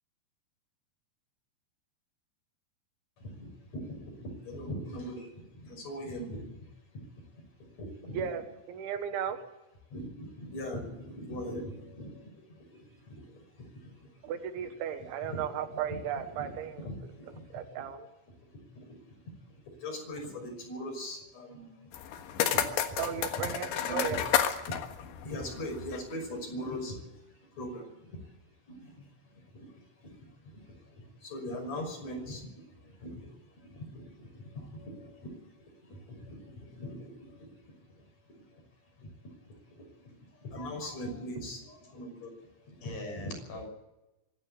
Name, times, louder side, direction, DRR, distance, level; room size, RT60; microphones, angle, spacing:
voice 1, 3.2-6.5 6.9-7.0 7.8-8.2 9.9-12.8 13.1-13.4 13.8-13.9 15.3-15.4 15.9-16.0 16.8-17.6 18.7-18.9 19.8-21.7 22.5-22.9 23.8-24.0 25.0-27.1 27.5-28.2 28.7-29.1 29.5-29.7 30.0-30.3 30.7-33.3 33.7-35.4 35.9-37.5 39.0-39.1 40.0-40.1 40.4-42.4 42.7-43.3, equal, 35° left, 3 dB, 6.8 m, -41 dB
voice 2, 8.7-9.4 14.2-16.9 17.5-18.1 23.0-24.2, right 9 dB, 90° right, 8 dB, 3.9 m, -35 dB
sound 1, 21.9-26.1, left 9 dB, 80° left, 3.8 m, -31 dB
voice 3, 40.5-41.2 42.8-43.7, left 2 dB, 55° left, 4 dB, 8.0 m, -43 dB
25.0 x 12.0 x 8.5 m, 0.96 s
omnidirectional pair, 5.2 m